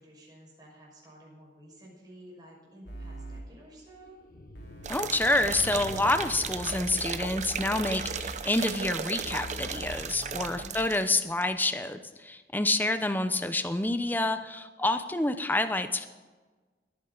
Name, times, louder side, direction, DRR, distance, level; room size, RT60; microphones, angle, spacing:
voice 1, 0.0-4.2 10.5-10.9, right 1 dB, 25° right, -3 dB, 5.7 m, -52 dB
sound 1, 2.5-8.1, left 2 dB, 55° left, 1.1 m, -47 dB
sound 2, 2.9-3.4 4.5-8.3 9.2-10.7, left 1 dB, 85° left, 3.1 m, -43 dB
sound 3, 4.8-11.1 11.4-11.5, right 6 dB, 40° right, 0.7 m, -36 dB
voice 2, 4.9-16.1, left 2 dB, 10° left, 9 dB, 0.7 m, -28 dB
21.5 x 9.8 x 4.0 m, 1.3 s
head